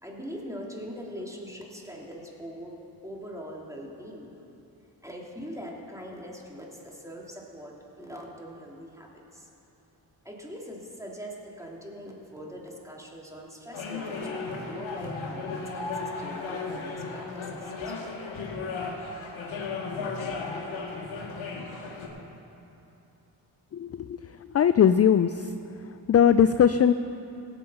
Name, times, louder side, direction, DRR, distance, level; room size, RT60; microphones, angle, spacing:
voice 1, 0.0-4.3 5.0-9.5 10.2-18.2, equal, 5° right, -2 dB, 3.0 m, -42 dB
sound 1, 13.7-22.1, left 4 dB, 85° left, 1.6 m, -35 dB
voice 2, 23.7-24.2 24.5-25.5 26.1-26.9, left 8 dB, 35° left, 12 dB, 0.4 m, -20 dB
17.0 x 7.7 x 5.6 m, 2.8 s
supercardioid pair, 45°, 47 cm